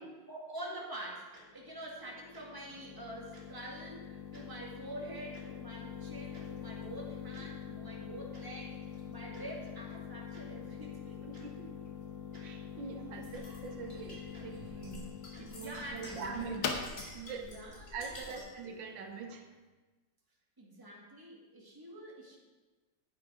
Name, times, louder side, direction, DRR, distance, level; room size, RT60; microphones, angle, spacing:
voice 1, 0.3-11.2 15.3-16.7 17.4-18.7 20.6-22.4, right 1 dB, 10° right, -3 dB, 1.7 m, -46 dB
Tick-tock, 1.3-1.4 2.3-2.4 3.3-3.4 4.3-4.4 5.3-5.4 6.3-6.4 7.3-7.5 8.3-8.4 9.3-9.4 10.3-10.4 11.3-11.4 12.3-12.4 13.3-13.4 14.3-14.4 15.3-15.5 16.3-16.4, right 2 dB, 30° right, 2.1 m, -57 dB
sound 1, 1.5-19.2, left 7 dB, 75° left, 1.6 m, -44 dB
voice 2, 11.2-11.7 12.4-15.1 15.4-16.6 17.1-17.6 17.9-19.5, right 5 dB, 85° right, 5 dB, 1.7 m, -43 dB
sound 2, 13.2-18.6, left 1 dB, 35° left, 2.5 m, -51 dB
9.5 x 8.7 x 4.8 m, 1.2 s
omnidirectional pair, 2.0 m